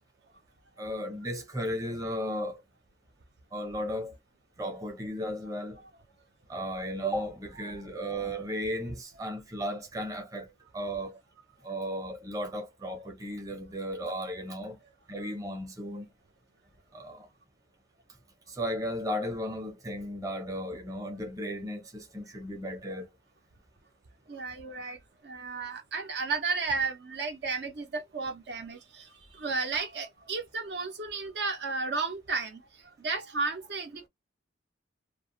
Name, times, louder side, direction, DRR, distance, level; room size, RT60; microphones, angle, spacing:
voice 1, 0.8-2.6 3.5-4.2 4.6-5.8 6.5-11.2 11.6-14.8 15.1-16.1 16.9-17.3 18.5-23.1, equal, 20° right, 0.7 m, -35 dB
voice 2, 24.3-25.0 25.2-32.6 33.0-34.1, right 4 dB, 55° right, 0.5 m, -33 dB
2.3 x 2.2 x 2.9 m
head